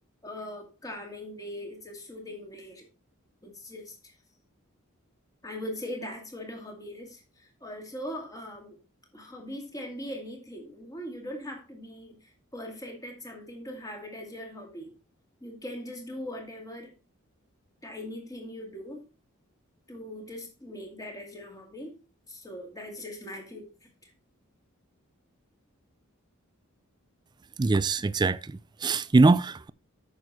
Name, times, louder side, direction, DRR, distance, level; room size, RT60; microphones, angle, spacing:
voice 1, 0.2-2.9 3.4-4.1 5.4-8.8 9.1-14.9 15.4-16.9 17.8-19.1 19.9-21.9 22.3-23.7 24.0-24.1, left 1 dB, 15° left, 2.2 m, -40 dB
voice 2, 27.6-28.4 28.8-29.7, right 3 dB, 20° right, 0.3 m, -22 dB
9.0 x 6.5 x 4.1 m
head